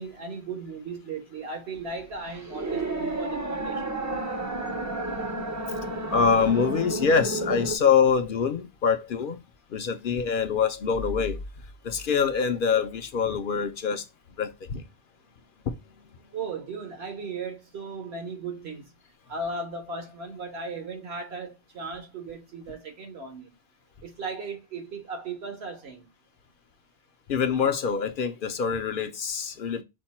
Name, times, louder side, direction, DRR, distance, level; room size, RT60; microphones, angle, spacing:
voice 1, 0.0-3.9 16.3-18.9 19.3-23.5 24.0-26.1, right 4 dB, 80° right, 1.4 m, -36 dB
sound 1, 1.8-7.8, right 2 dB, 25° right, 0.4 m, -31 dB
voice 2, 6.1-9.4 9.7-11.4 11.8-14.0 14.4-14.8 27.3-29.8, left 6 dB, 60° left, 0.7 m, -25 dB
5.2 x 2.2 x 4.1 m
omnidirectional pair, 1.1 m